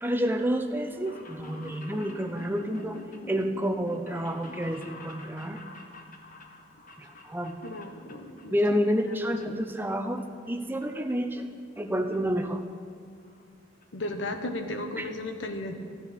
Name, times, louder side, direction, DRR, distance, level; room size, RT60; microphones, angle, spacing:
voice 1, 0.0-3.0 3.3-5.6 7.0-7.6 8.5-11.5 11.8-12.6 15.0-15.1, equal, 10° right, 6 dB, 0.6 m, -29 dB
sound 1, 0.9-8.5 8.7-9.4 9.8-10.8 11.1-11.2 12.1-12.2 12.4-12.5 12.8-12.9 13.2-13.4 13.8-13.9 14.1-14.2, left 1 dB, 45° left, 1.1 m, -47 dB
voice 2, 7.6-8.5 9.3-9.7 13.9-15.7, left 1 dB, 80° left, 6 dB, 1.0 m, -35 dB
15.0 x 9.7 x 4.2 m, 2.3 s
head